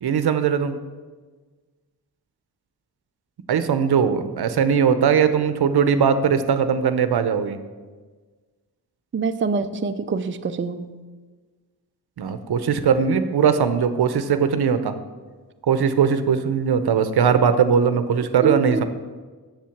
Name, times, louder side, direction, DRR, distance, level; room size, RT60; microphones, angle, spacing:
voice 1, 0.0-0.7 3.5-7.6 12.2-14.9 15.7-18.8, right 7 dB, 80° right, 10 dB, 0.7 m, -20 dB
voice 2, 9.1-11.0 18.4-18.8, right 4 dB, 30° right, 8 dB, 0.5 m, -25 dB
7.5 x 7.4 x 7.1 m, 1.4 s
wide cardioid pair, 85°, 38 cm